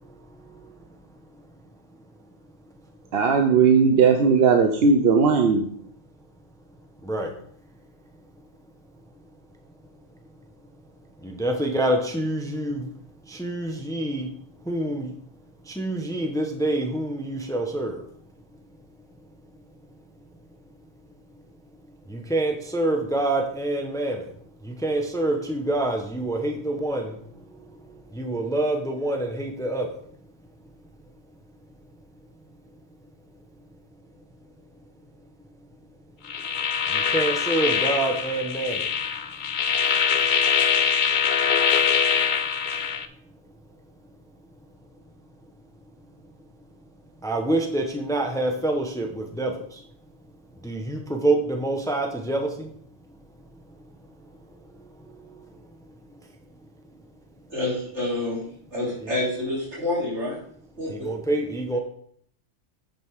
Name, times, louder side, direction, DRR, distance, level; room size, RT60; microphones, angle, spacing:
voice 1, 3.1-5.7, right 5 dB, 60° right, 4 dB, 0.9 m, -18 dB
voice 2, 11.2-12.9 13.3-14.3 14.6-15.1 15.7-18.0 22.1-24.3 24.6-27.2 28.1-30.0 36.9-38.9 47.2-49.8 50.6-52.7 60.9-61.8, right 2 dB, 5° left, 3 dB, 0.9 m, -26 dB
sound 1, 36.3-43.0, left 7 dB, 55° left, 0.6 m, -23 dB
voice 3, 57.5-58.4 58.7-60.4 60.8-61.1, left 2 dB, 80° right, -5 dB, 3.4 m, -28 dB
9.0 x 5.4 x 4.8 m, 0.63 s
omnidirectional pair, 1.2 m